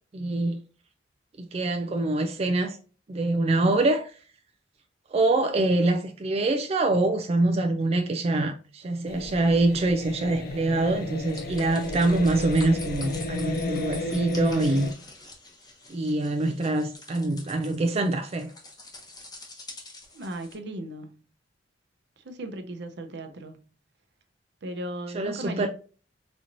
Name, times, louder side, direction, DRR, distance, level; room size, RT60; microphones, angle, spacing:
voice 1, 0.1-0.6 1.4-2.8 3.1-4.1 5.1-14.9 15.9-18.5 25.1-25.7, right 2 dB, 35° right, 0.4 m, -25 dB
sound 1, 9.1-14.9, left 2 dB, 55° left, 0.5 m, -33 dB
sound 2, 11.3-20.6, left 2 dB, 20° left, 0.9 m, -46 dB
voice 2, 20.1-21.3 22.2-23.7 24.6-25.7, right 1 dB, 65° right, 0.7 m, -37 dB
4.2 x 3.0 x 2.5 m
head